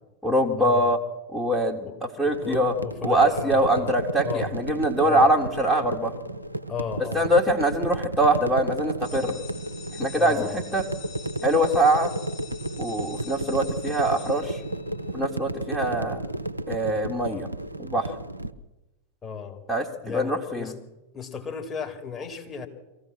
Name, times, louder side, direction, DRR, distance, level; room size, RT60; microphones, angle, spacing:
voice 1, 0.2-1.0 1.3-2.7 3.0-6.2 7.1-9.3 10.0-10.8 11.4-12.1 12.8-14.6 15.1-16.2 16.7-17.5 17.8-18.1 19.7-20.7, right 1 dB, ahead, -2 dB, 2.0 m, -23 dB
voice 2, 2.2-3.9 4.2-4.5 5.0-5.3 6.7-7.3 10.1-10.6 19.2-19.6 20.0-20.7 21.1-22.7, left 6 dB, 20° left, 3 dB, 3.4 m, -34 dB
sound 1, 2.3-18.5, right 1 dB, 85° right, 0.9 m, -33 dB
sound 2, 9.0-15.2, left 6 dB, 60° left, 6.9 m, -45 dB
23.5 x 15.5 x 7.5 m, 1.0 s
figure-of-eight pair, 90°, 0 cm